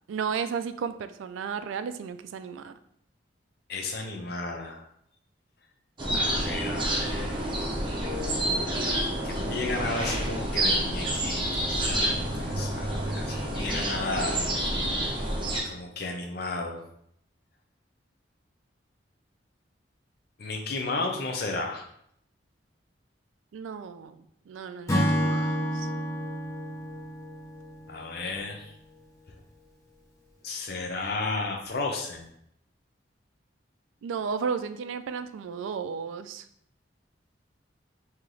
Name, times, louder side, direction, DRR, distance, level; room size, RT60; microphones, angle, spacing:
voice 1, 0.1-2.8 23.5-25.9 34.0-36.5, right 6 dB, 90° right, 11 dB, 0.3 m, -34 dB
voice 2, 3.7-4.8 6.1-7.4 9.2-14.4 14.9-15.1 15.6-16.8 20.4-21.9 27.9-28.7 30.4-32.3, left 3 dB, 55° left, 2 dB, 0.6 m, -33 dB
sound 1, 6.0-15.6, right 1 dB, 25° right, 0.7 m, -28 dB
Acoustic guitar / Strum, 24.9-28.3, equal, 15° left, 0.6 m, -29 dB
3.2 x 2.8 x 3.8 m, 0.70 s
head